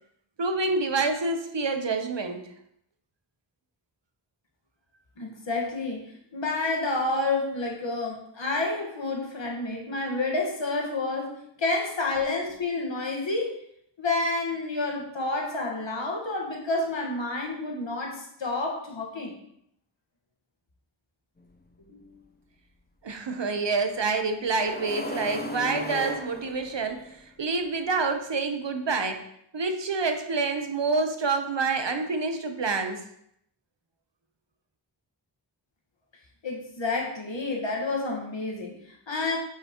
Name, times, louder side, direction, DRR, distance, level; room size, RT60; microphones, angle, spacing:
voice 1, 0.4-2.5 23.0-29.2 29.5-33.0, right 4 dB, 65° right, 6 dB, 0.9 m, -27 dB
voice 2, 5.2-13.5 14.0-19.3 21.8-22.2 36.4-39.4, left 2 dB, 70° left, -1 dB, 1.6 m, -29 dB
sound 1, 21.4-21.5 24.5-27.2, left 1 dB, 20° left, 0.7 m, -35 dB
8.2 x 5.7 x 3.0 m, 0.73 s
wide cardioid pair, 60°, 46 cm